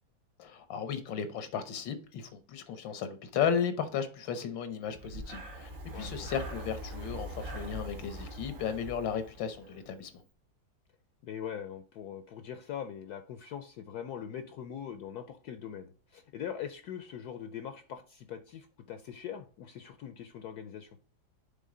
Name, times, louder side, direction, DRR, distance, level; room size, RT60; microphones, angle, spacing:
voice 1, 0.4-10.1, left 7 dB, 90° left, 1.7 m, -34 dB
Breathing, 4.9-9.9, right 1 dB, 75° right, 2.2 m, -42 dB
voice 2, 5.9-6.3 11.2-20.9, left 8 dB, 70° left, 1.0 m, -42 dB
9.2 x 3.9 x 3.7 m
omnidirectional pair, 2.0 m